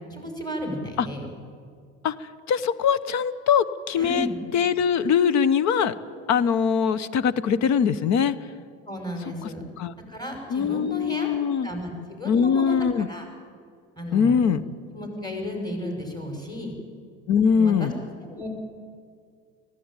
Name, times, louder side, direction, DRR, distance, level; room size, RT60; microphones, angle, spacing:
voice 1, 0.1-1.3 4.0-4.4 8.9-9.6 10.0-11.3 11.6-12.8 13.1-13.3 14.0-14.4 14.9-16.7 17.5-17.9 18.2-18.5, equal, 10° left, 2 dB, 5.7 m, -33 dB
voice 2, 2.0-4.3 4.5-5.9 6.3-8.3 9.4-9.5 9.8-9.9 10.5-11.7 12.2-13.1 14.1-14.6 17.3-17.9, left 7 dB, 50° left, 17 dB, 1.1 m, -22 dB
19.5 x 15.5 x 9.0 m, 2.2 s
supercardioid pair, 100°, 35 cm